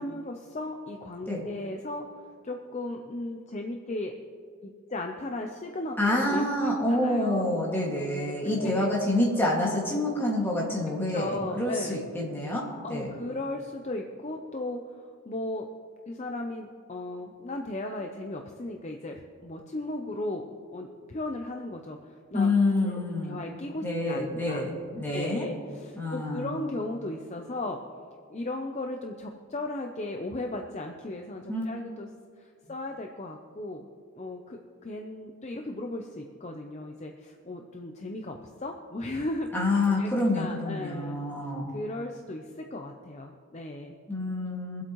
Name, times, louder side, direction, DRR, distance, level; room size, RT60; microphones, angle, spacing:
voice 1, 0.0-2.1 2.4-4.2 4.6-5.9 6.3-7.5 8.4-8.9 11.1-12.0 12.8-15.7 16.1-24.6 25.1-27.8 28.3-32.1 32.4-33.9 34.2-41.2 41.7-43.9, left 2 dB, 30° left, 3 dB, 0.6 m, -36 dB
voice 2, 6.0-13.1 22.3-23.5 23.8-25.4 26.0-26.5 31.5-31.6 39.5-41.7 44.1-44.8, left 1 dB, 10° left, -4 dB, 2.0 m, -27 dB
23.5 x 8.1 x 3.1 m, 2.2 s
head